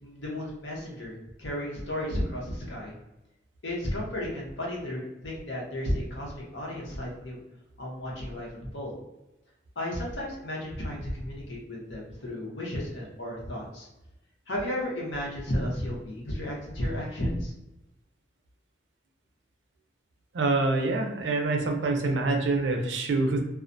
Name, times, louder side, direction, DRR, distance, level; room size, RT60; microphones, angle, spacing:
voice 1, 0.0-2.9 3.6-7.4 7.8-9.0 9.8-13.9 14.5-17.5, left 1 dB, 85° left, -3 dB, 0.8 m, -33 dB
voice 2, 20.3-23.4, right 3 dB, 80° right, 3 dB, 0.4 m, -26 dB
2.3 x 2.1 x 2.5 m, 0.93 s
head